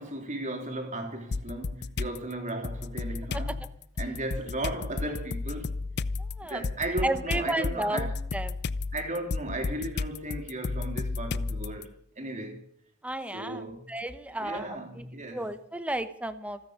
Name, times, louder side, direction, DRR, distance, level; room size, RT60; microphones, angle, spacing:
voice 1, 0.0-3.6 4.0-5.8 6.4-8.1 8.9-12.6 13.3-13.8 14.3-15.5, right 1 dB, 35° right, 3.5 m, -35 dB
sound 1, 1.3-2.2 2.6-11.8, left 3 dB, 50° left, 0.6 m, -33 dB
voice 2, 7.0-8.5 13.0-14.7 15.0-16.7, right 1 dB, 5° right, 1.0 m, -33 dB
27.5 x 9.7 x 5.2 m
head